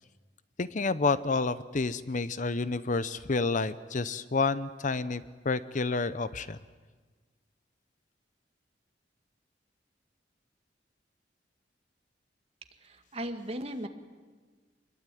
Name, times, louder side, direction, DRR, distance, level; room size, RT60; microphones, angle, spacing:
voice 1, 0.6-6.6, left 3 dB, 45° left, 15 dB, 0.7 m, -29 dB
voice 2, 12.8-13.9, right 1 dB, 35° right, 6 dB, 2.0 m, -37 dB
25.0 x 21.5 x 9.2 m, 1.4 s
head